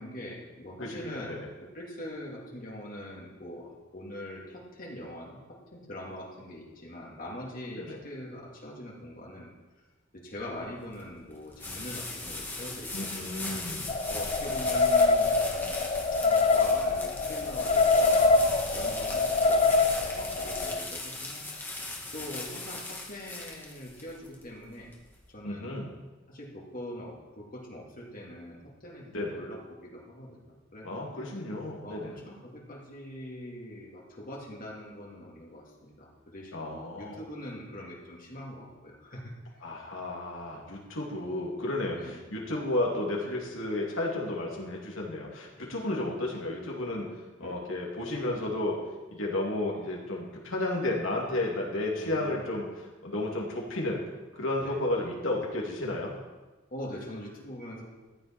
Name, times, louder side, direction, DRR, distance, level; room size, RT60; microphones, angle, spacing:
voice 1, 0.0-9.5 10.1-15.8 16.2-21.8 22.1-24.9 25.3-25.8 26.3-29.1 29.4-31.1 31.8-39.3 41.9-42.2 47.4-47.6 50.2-50.3 52.0-52.5 54.6-54.8 56.7-57.9, left 1 dB, 45° left, -2 dB, 2.3 m, -43 dB
voice 2, 0.8-1.5 7.8-8.0 12.9-13.9 25.4-25.9 29.1-29.4 30.8-32.2 36.5-37.2 39.6-47.1 47.4-48.8 49.1-54.0 54.3-56.2, left 1 dB, 75° left, -2 dB, 2.9 m, -32 dB
sound 1, 10.4-25.3, left 2 dB, 10° left, 1.8 m, -39 dB
sound 2, 13.9-20.8, left 3 dB, 30° left, 0.4 m, -25 dB
sound 3, 15.0-16.8 18.2-20.2, right 2 dB, 80° right, 2.5 m, -49 dB
14.5 x 10.0 x 4.5 m, 1.2 s
head